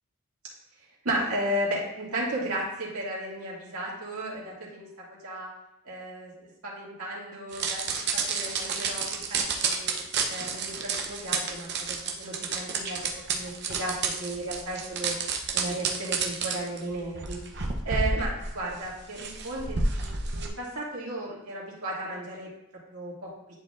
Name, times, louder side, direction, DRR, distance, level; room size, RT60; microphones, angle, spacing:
voice 1, 1.0-5.5 5.8-7.8 8.1-9.9 10.3-13.0 13.3-15.1 15.5-17.4 17.8-22.5 22.9-23.3, right 1 dB, 85° right, -5 dB, 2.1 m, -34 dB
sound 1, 7.5-20.5, right 5 dB, 50° right, 0.7 m, -30 dB
10.5 x 4.3 x 2.5 m, 0.88 s
head